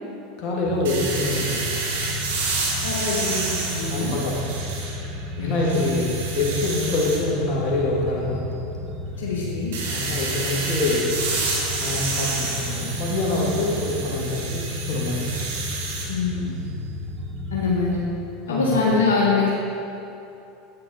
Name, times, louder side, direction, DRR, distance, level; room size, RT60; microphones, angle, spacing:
voice 1, 0.4-1.7 3.8-4.7 5.4-8.5 9.9-11.2 11.8-15.3 18.5-18.8, left 2 dB, 50° left, -3 dB, 2.4 m, -25 dB
sound 1, 0.6-18.0, left 2 dB, 45° right, 1.3 m, -33 dB
sound 2, 0.8-5.1 5.5-7.2 9.7-16.1, right 3 dB, 75° right, 1.8 m, -29 dB
voice 2, 2.8-4.1 5.4-6.0 9.2-9.7 16.1-16.5 17.5-18.0 18.5-19.5, left 4 dB, 85° left, -5 dB, 1.5 m, -24 dB
9.6 x 8.7 x 4.5 m, 2.9 s
hypercardioid pair, 90°, 0 cm